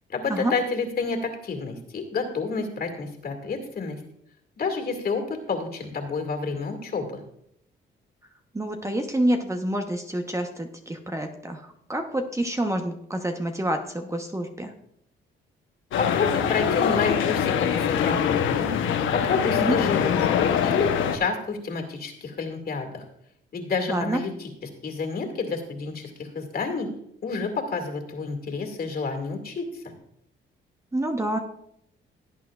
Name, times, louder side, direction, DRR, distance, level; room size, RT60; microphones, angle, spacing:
voice 1, 0.1-4.0 4.6-7.2 16.0-18.7 19.1-23.1 23.5-26.9 27.2-29.9, left 4 dB, 50° left, 4 dB, 2.3 m, -29 dB
voice 2, 8.5-14.7 19.5-19.8 23.9-24.2 30.9-31.4, right 1 dB, 15° right, 4 dB, 1.0 m, -27 dB
sound 1, 15.9-21.2, left 8 dB, 80° left, 1.0 m, -23 dB
17.0 x 8.7 x 2.4 m, 0.73 s
cardioid pair, 90°, 20 cm